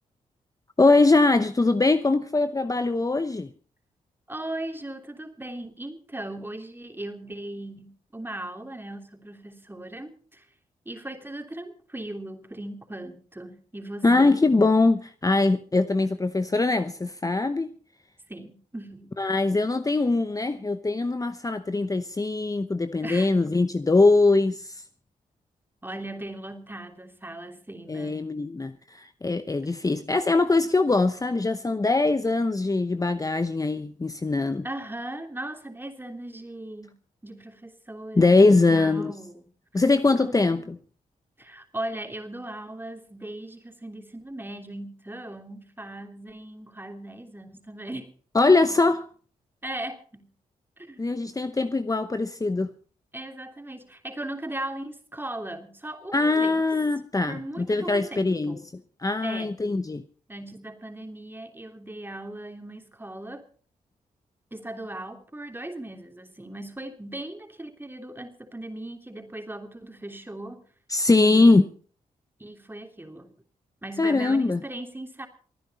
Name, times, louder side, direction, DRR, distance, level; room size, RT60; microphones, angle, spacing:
voice 1, 0.8-3.5 14.0-17.7 19.2-24.8 27.9-34.7 38.2-39.1 39.7-40.6 48.3-49.0 51.0-52.7 56.1-58.6 59.0-60.0 70.9-71.6 74.0-74.6, left 3 dB, 25° left, 0.9 m, -22 dB
voice 2, 4.3-10.5 10.8-14.4 18.3-19.1 23.0-23.3 25.8-28.3 34.6-39.5 40.1-40.3 41.4-48.2 48.4-48.8 49.6-50.3 50.8-51.1 53.1-56.6 57.3-58.6 59.2-59.5 60.3-63.4 64.5-70.6 71.2-71.7 72.4-73.4 73.8-75.3, right 1 dB, 15° right, 3.0 m, -38 dB
27.5 x 9.9 x 4.2 m
supercardioid pair, 55°, 15 cm